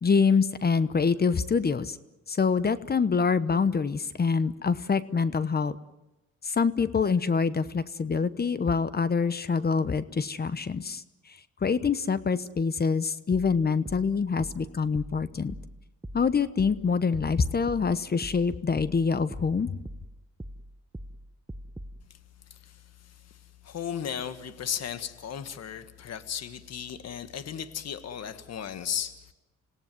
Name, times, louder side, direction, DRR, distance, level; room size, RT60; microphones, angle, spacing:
voice 1, 0.0-2.0 2.3-5.8 6.4-11.0 11.6-15.5 16.1-19.8, left 5 dB, 30° left, 15 dB, 1.1 m, -25 dB
sound 1, 13.3-22.0, equal, 10° right, 1.2 m, -43 dB
voice 2, 22.5-23.4 23.6-29.3, left 8 dB, 55° left, 11 dB, 1.7 m, -36 dB
27.0 x 17.5 x 9.5 m, 0.98 s
cardioid pair, 90°, 30 cm